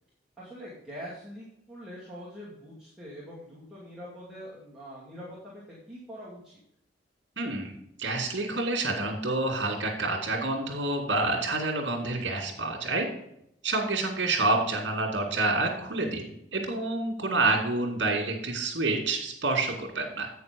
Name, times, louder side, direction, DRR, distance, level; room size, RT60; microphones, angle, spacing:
voice 1, 0.4-6.6 15.2-15.3, equal, 5° right, -9 dB, 2.4 m, -44 dB
voice 2, 7.4-13.1 13.6-20.3, right 2 dB, 70° right, 0 dB, 2.3 m, -28 dB
8.7 x 6.6 x 5.2 m, 0.76 s
head